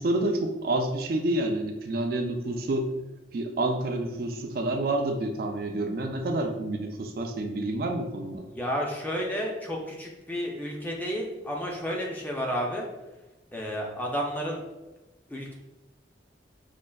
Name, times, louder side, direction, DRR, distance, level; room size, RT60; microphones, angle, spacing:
voice 1, 0.0-2.9 3.3-8.4, right 2 dB, 55° right, 4 dB, 0.3 m, -28 dB
voice 2, 8.5-12.9 13.5-14.6 15.3-15.5, equal, 10° left, -1 dB, 0.4 m, -31 dB
5.1 x 2.4 x 2.3 m, 1.1 s
head